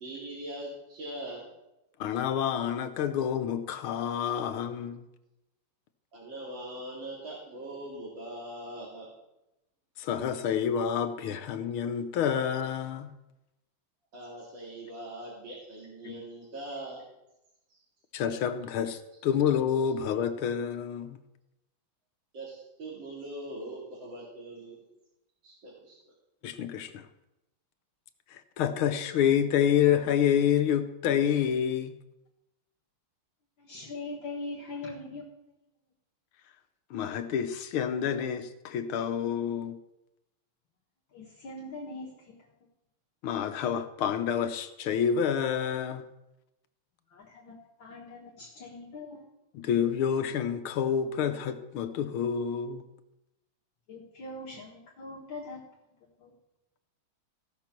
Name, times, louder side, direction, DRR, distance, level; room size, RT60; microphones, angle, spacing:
voice 1, 0.0-1.5 6.1-9.1 14.1-17.0 22.3-24.8 25.4-26.0, right 1 dB, 60° right, 3.1 m, -41 dB
voice 2, 2.0-5.0 10.0-13.1 16.0-16.1 18.1-21.2 26.4-27.0 28.3-31.9 36.9-39.8 43.2-46.0 49.5-52.8, left 8 dB, 80° left, 1.7 m, -28 dB
voice 3, 33.6-35.3 41.1-42.4 47.1-49.2 53.9-55.6 56.2-56.3, left 2 dB, 65° left, 2.2 m, -41 dB
16.0 x 6.0 x 6.0 m
omnidirectional pair, 2.3 m